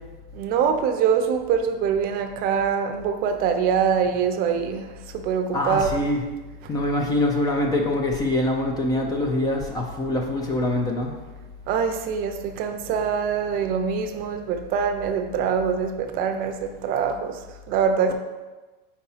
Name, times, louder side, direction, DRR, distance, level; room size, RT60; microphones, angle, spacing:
voice 1, 0.3-5.9 11.7-18.1, right 7 dB, 30° right, 6 dB, 0.6 m, -24 dB
voice 2, 5.5-6.2 6.7-11.1, left 1 dB, 15° left, 1 dB, 0.3 m, -24 dB
4.6 x 4.2 x 5.5 m, 1.2 s
supercardioid pair, 145°, 29 cm